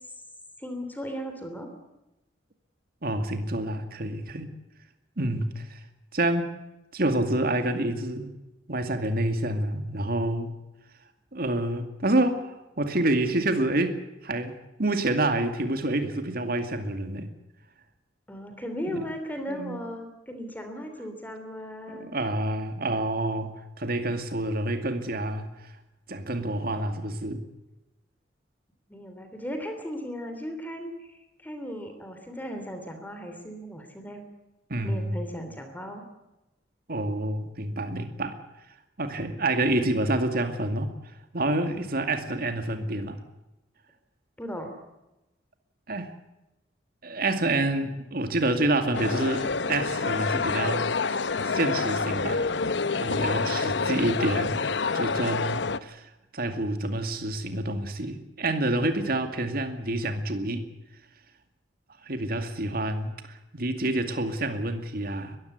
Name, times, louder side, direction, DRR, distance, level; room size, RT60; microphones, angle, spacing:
voice 1, 0.6-1.7 18.3-22.1 28.9-34.2 34.8-36.0 44.4-44.7 52.9-53.7, equal, 10° left, 6 dB, 3.1 m, -37 dB
voice 2, 3.0-4.5 5.2-5.8 6.1-6.5 6.9-8.3 8.7-10.5 11.3-17.3 18.9-19.1 19.5-19.8 21.9-25.5 26.1-27.4 34.7-35.2 36.9-38.4 39.0-40.9 41.3-43.2 45.9-46.1 47.0-52.5 53.0-54.6 54.9-60.7 62.0-65.4, right 1 dB, 55° right, 8 dB, 2.3 m, -28 dB
sound 1, 48.9-55.8, left 4 dB, 75° left, 0.9 m, -27 dB
21.5 x 15.0 x 9.6 m, 0.96 s
head